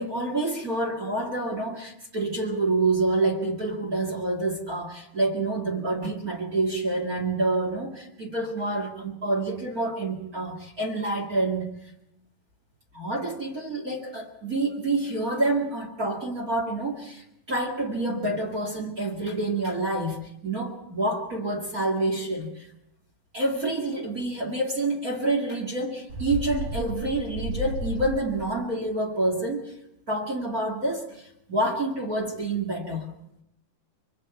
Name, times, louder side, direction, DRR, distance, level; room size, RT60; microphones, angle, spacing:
voice 1, 0.0-11.7 12.9-22.7 23.3-29.7 30.1-33.1, right 2 dB, 30° right, 1 dB, 2.2 m, -28 dB
Bird, 26.1-28.6, equal, 50° right, 3.8 m, -33 dB
25.5 x 23.5 x 4.5 m, 0.81 s
omnidirectional pair, 4.1 m